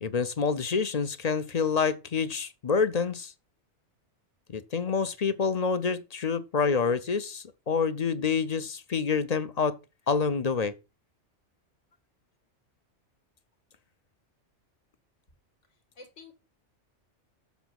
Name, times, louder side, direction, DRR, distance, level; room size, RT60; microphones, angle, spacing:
voice 1, 0.0-3.3 4.5-9.8 10.1-10.7, left 5 dB, 40° left, 0.6 m, -27 dB
voice 2, 15.7-16.3, left 3 dB, 80° left, 2.2 m, -50 dB
7.3 x 7.1 x 5.9 m
omnidirectional pair, 1.2 m